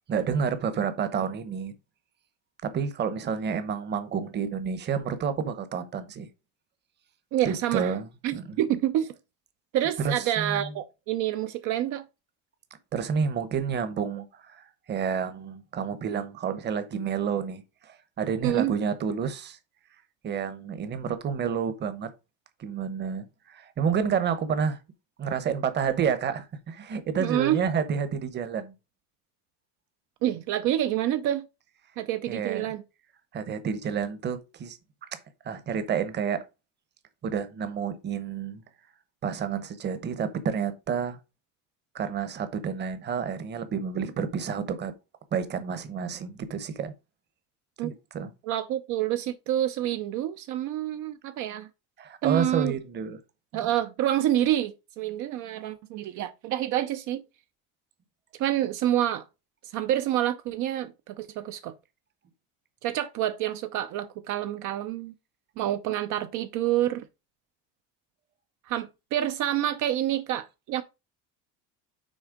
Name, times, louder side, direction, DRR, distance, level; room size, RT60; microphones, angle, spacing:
voice 1, 0.1-1.7 2.6-6.3 7.4-8.6 10.0-10.7 12.9-19.6 20.2-22.1 22.6-24.8 25.2-28.7 32.3-32.7 33.3-34.8 35.4-36.4 37.2-38.6 39.2-41.2 41.9-44.9 45.3-46.9 47.8-48.3 52.0-53.2, right 6 dB, 30° right, 1.0 m, -29 dB
voice 2, 7.3-7.9 8.2-9.2 9.7-12.0 18.4-18.7 27.2-27.6 30.2-31.5 32.0-32.8 47.8-47.9 48.4-51.7 52.2-52.8 53.5-57.2 58.4-59.2 59.7-61.7 62.8-65.1 65.6-67.0 68.7-70.8, right 12 dB, 65° right, 0.7 m, -27 dB
6.3 x 4.3 x 5.1 m
cardioid pair, 160°, 33 cm